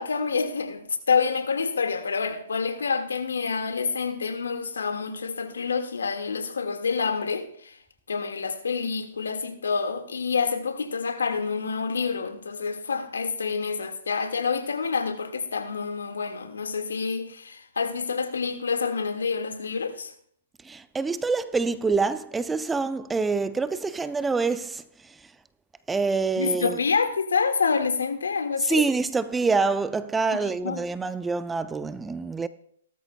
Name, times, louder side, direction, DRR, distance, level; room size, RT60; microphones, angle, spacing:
voice 1, 0.0-7.8 8.1-20.1 26.3-28.8 30.6-30.8, left 5 dB, 85° left, 1.7 m, -27 dB
voice 2, 20.6-24.8 25.9-26.8 28.6-32.5, right 4 dB, 10° right, 0.5 m, -26 dB
17.5 x 13.0 x 2.2 m
hypercardioid pair, 135°, 0 cm